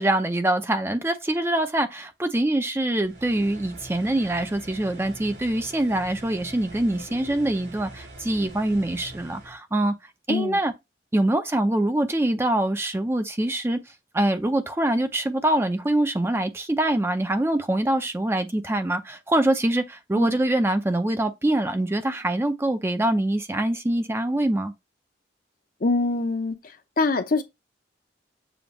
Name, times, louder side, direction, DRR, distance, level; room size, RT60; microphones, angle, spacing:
voice 1, 0.0-9.9 10.3-10.7 11.1-13.8 14.1-24.7, right 1 dB, 15° right, 0.4 m, -24 dB
sound 1, 3.0-9.6, right 1 dB, 80° right, 3.1 m, -43 dB
voice 2, 10.3-10.6 20.1-20.4 25.8-26.6 27.0-27.4, left 3 dB, 50° left, 0.6 m, -24 dB
7.0 x 2.4 x 2.9 m
head